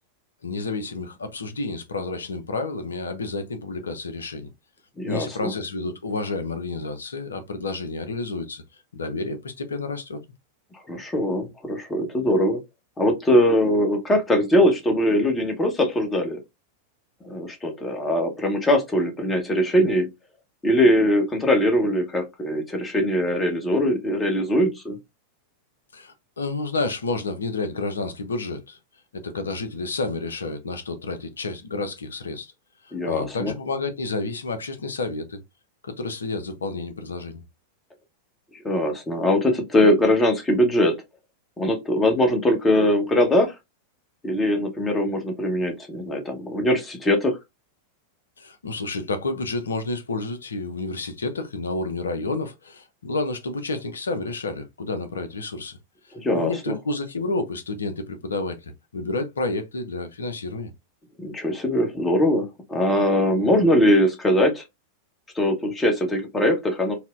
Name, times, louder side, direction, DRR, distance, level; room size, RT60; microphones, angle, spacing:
voice 1, 0.4-4.5 5.0-8.6 8.9-10.2 25.9-28.8 29.1-32.5 32.8-35.4 35.8-37.4 48.4-55.8 56.3-60.7, left 3 dB, 70° left, 0.5 m, -30 dB
voice 2, 5.0-5.5 10.9-12.6 13.0-16.4 17.2-20.1 20.6-25.0 32.9-33.5 38.5-40.9 41.6-43.5 44.2-47.4 56.1-56.7 61.2-64.6 65.3-66.9, left 1 dB, 15° left, 0.9 m, -21 dB
4.1 x 2.1 x 2.3 m
figure-of-eight pair, 90°, 0 cm